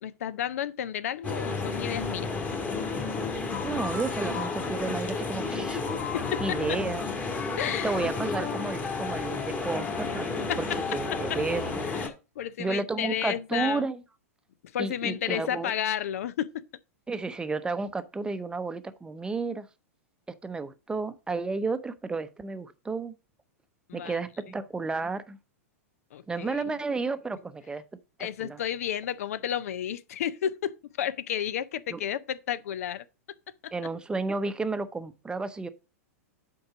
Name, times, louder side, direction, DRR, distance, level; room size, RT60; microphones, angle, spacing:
voice 1, 0.0-2.3 6.0-6.8 7.6-8.0 10.5-11.4 11.8-13.8 14.6-16.7 23.9-24.2 26.1-26.6 28.2-33.1 33.6-33.7, left 10 dB, 70° left, 0.5 m, -32 dB
sound 1, 1.2-12.1, left 4 dB, 20° left, 1.6 m, -31 dB
voice 2, 3.6-5.8 6.4-7.0 7.8-10.3 10.6-10.7 10.9-11.9 12.6-14.0 14.8-15.7 17.1-19.7 20.4-23.1 23.9-25.4 26.3-27.8 28.4-28.6 31.9-32.0 33.7-35.7, right 3 dB, 10° right, 0.7 m, -32 dB
7.8 x 4.7 x 4.9 m
hypercardioid pair, 110°, 8 cm